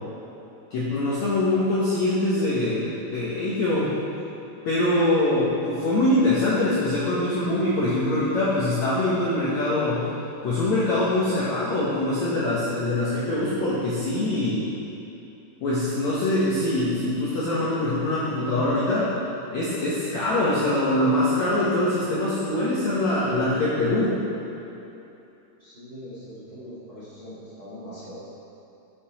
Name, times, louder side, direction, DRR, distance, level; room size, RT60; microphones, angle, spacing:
voice 1, 0.7-3.9 4.6-10.1 10.4-14.6 15.6-19.1 19.5-24.2, left 1 dB, 85° left, -8 dB, 1.6 m, -23 dB
voice 2, 25.6-28.1, equal, 30° right, -11 dB, 2.0 m, -41 dB
8.9 x 7.8 x 5.0 m, 2.9 s
omnidirectional pair, 5.3 m